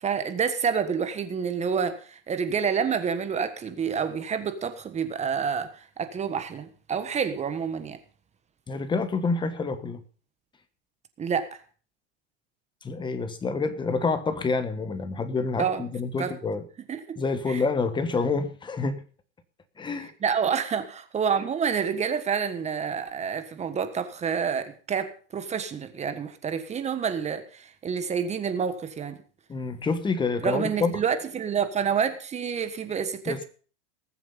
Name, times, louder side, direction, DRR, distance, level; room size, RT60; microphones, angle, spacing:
voice 1, 0.0-8.0 11.2-11.6 15.6-15.8 16.2-16.3 16.9-17.2 17.5-17.6 20.2-29.2 30.4-33.4, right 7 dB, 20° right, 10 dB, 1.5 m, -28 dB
voice 2, 8.7-10.0 12.8-16.6 17.2-19.0 19.8-20.1 29.5-30.9 33.3-33.4, left 4 dB, 15° left, 11 dB, 1.4 m, -28 dB
19.5 x 7.5 x 5.4 m, 0.41 s
supercardioid pair, 130°, 34 cm